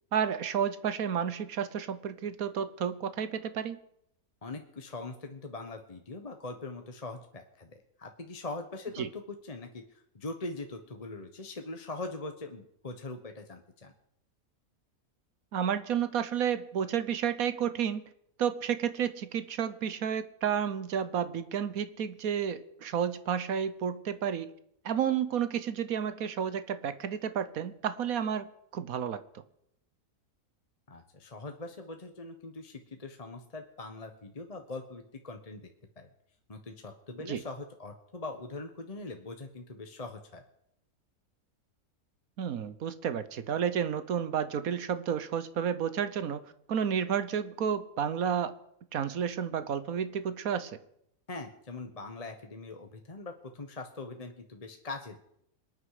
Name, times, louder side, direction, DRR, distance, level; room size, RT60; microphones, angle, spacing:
voice 1, 0.1-3.8 9.0-9.1 15.5-18.0 18.4-24.5 24.8-29.2 37.3-37.4 42.4-46.4 46.7-48.5 48.9-50.7, right 8 dB, 70° right, 13 dB, 1.4 m, -31 dB
voice 2, 4.4-13.9 30.9-35.7 36.0-36.1 36.5-40.4 51.3-55.2, left 3 dB, 25° left, 5 dB, 1.2 m, -42 dB
26.5 x 9.3 x 4.9 m, 0.74 s
omnidirectional pair, 1.6 m